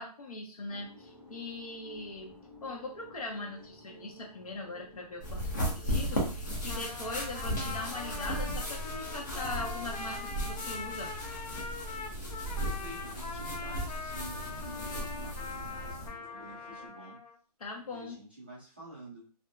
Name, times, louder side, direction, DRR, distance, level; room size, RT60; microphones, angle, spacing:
voice 1, 0.0-5.5 5.7-11.1 17.6-18.2, left 2 dB, 60° left, 0 dB, 1.0 m, -41 dB
sound 1, 0.7-16.9, left 1 dB, 10° left, 1.0 m, -55 dB
sound 2, 5.2-16.1, equal, 30° left, 0.7 m, -36 dB
Trumpet, 6.5-17.4, left 4 dB, 80° left, 0.6 m, -42 dB
voice 2, 12.6-17.2 17.8-19.3, right 2 dB, 15° right, -8 dB, 0.4 m, -49 dB
2.7 x 2.6 x 2.2 m, 0.37 s
hypercardioid pair, 180°, 21 cm